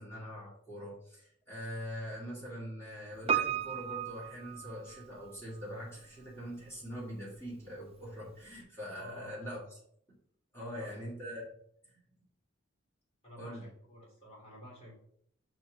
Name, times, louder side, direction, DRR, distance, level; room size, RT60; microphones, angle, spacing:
voice 1, 0.0-9.8 10.5-11.5 13.4-13.7, equal, 10° left, -6 dB, 2.2 m, -43 dB
Piano, 3.3-5.3 5.6-5.7, right 8 dB, 30° right, 0.3 m, -34 dB
voice 2, 8.9-9.4 10.6-10.8 13.2-14.9, left 1 dB, 30° left, -5 dB, 2.7 m, -51 dB
6.3 x 4.4 x 5.1 m, 0.68 s
head